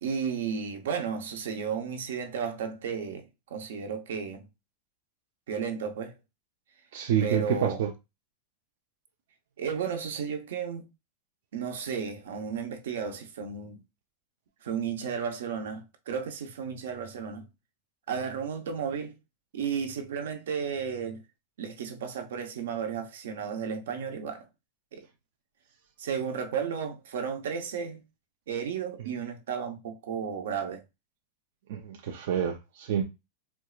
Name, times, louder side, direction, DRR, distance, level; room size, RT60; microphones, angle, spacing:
voice 1, 0.0-4.5 5.5-6.1 7.2-7.8 9.6-10.9 11.5-13.8 14.6-17.5 18.1-19.2 19.5-21.2 21.6-24.4 24.9-25.1 26.0-28.0 28.5-30.8, right 6 dB, 85° right, 0.8 m, -33 dB
voice 2, 6.9-7.9 31.7-33.0, right 9 dB, 65° right, 0.5 m, -28 dB
4.5 x 2.0 x 2.4 m
supercardioid pair, 155°, 0 cm